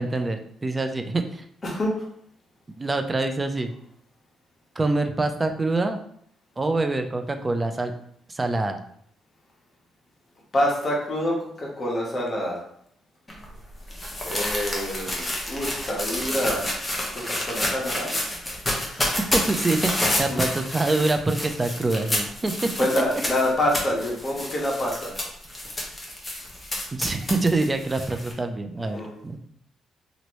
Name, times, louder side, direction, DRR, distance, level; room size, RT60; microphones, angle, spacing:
voice 1, 0.0-1.4 2.8-3.7 4.8-6.0 6.6-7.9 8.3-8.8 19.3-22.7 26.9-29.4, right 2 dB, 25° right, 6 dB, 0.4 m, -25 dB
voice 2, 1.6-2.0 10.5-12.6 14.2-16.7 17.1-18.2 18.7-19.2 20.3-20.6 22.8-25.1 28.9-29.1, left 1 dB, 35° left, -2 dB, 1.0 m, -27 dB
sound 1, 13.3-28.3, left 1 dB, 15° left, 0.9 m, -29 dB
2.9 x 2.6 x 3.0 m, 0.66 s
cardioid pair, 90°, 0 cm